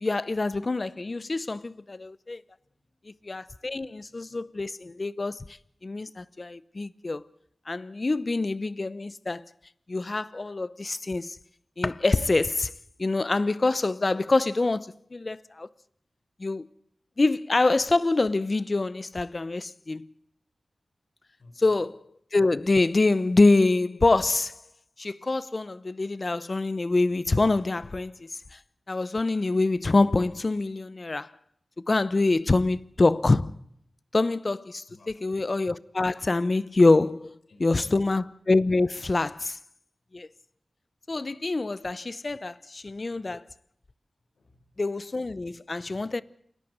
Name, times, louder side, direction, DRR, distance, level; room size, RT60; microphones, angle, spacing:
voice 1, 0.0-2.4 3.2-5.4 5.8-7.2 7.7-9.4 9.9-11.4 11.8-12.7 13.0-15.7 16.4-16.7 17.2-20.1 21.6-22.0 22.3-24.5 25.0-28.6 28.9-31.3 31.9-33.5 34.1-34.8 35.2-39.6 40.1-40.3 41.1-43.4 44.8-46.2, left 3 dB, 50° left, 0.8 m, -25 dB
voice 2, 2.6-3.0 3.5-4.1 21.4-21.8 34.9-35.3 37.5-38.1 44.3-44.7, left 3 dB, 85° left, 4.2 m, -54 dB
29.0 x 11.5 x 8.0 m
wide cardioid pair, 60°, 0 cm